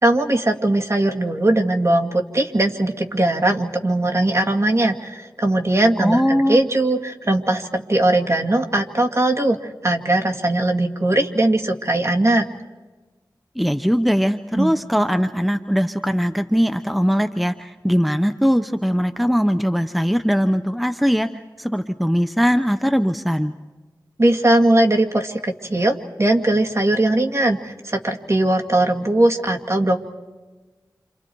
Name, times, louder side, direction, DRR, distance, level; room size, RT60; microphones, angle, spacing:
voice 1, 0.0-9.6 9.8-12.5 14.5-14.7 24.2-30.1, right 1 dB, 40° right, 2 dB, 2.3 m, -19 dB
voice 2, 6.0-6.6 13.6-21.3 21.6-23.5, equal, ahead, 9 dB, 0.9 m, -20 dB
29.5 x 27.0 x 4.7 m, 1.2 s
wide cardioid pair, 50°, 8 cm